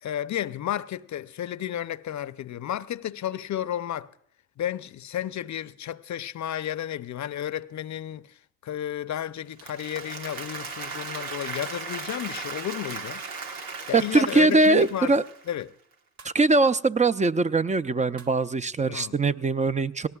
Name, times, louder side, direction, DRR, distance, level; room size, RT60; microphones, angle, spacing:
voice 1, 0.0-4.1 4.6-13.2 13.9-15.1 15.5-15.7 18.9-19.2, left 11 dB, 50° left, 0.6 m, -32 dB
Applause, 9.4-15.6, right 4 dB, 85° right, 1.4 m, -37 dB
sound 1, 12.2-12.5 14.3-14.6 16.2-16.4 18.2-18.4, right 4 dB, 50° right, 1.4 m, -50 dB
voice 2, 13.9-15.2 16.2-20.1, right 3 dB, 20° right, 0.5 m, -22 dB
18.5 x 17.5 x 2.3 m
supercardioid pair, 60°, 36 cm